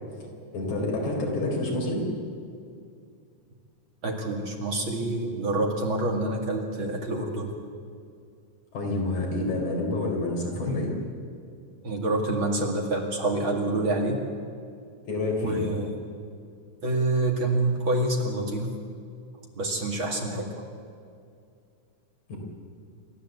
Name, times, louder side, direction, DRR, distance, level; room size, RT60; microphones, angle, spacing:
voice 1, 0.5-2.1 8.7-10.9 15.1-15.6 22.3-22.4, left 2 dB, 75° left, 0 dB, 5.6 m, -28 dB
voice 2, 4.0-7.5 10.6-10.8 11.8-14.2 15.4-16.0 16.8-18.7 19.5-20.5, right 2 dB, 45° right, 1 dB, 2.8 m, -27 dB
28.0 x 13.5 x 8.2 m, 2.4 s
omnidirectional pair, 3.5 m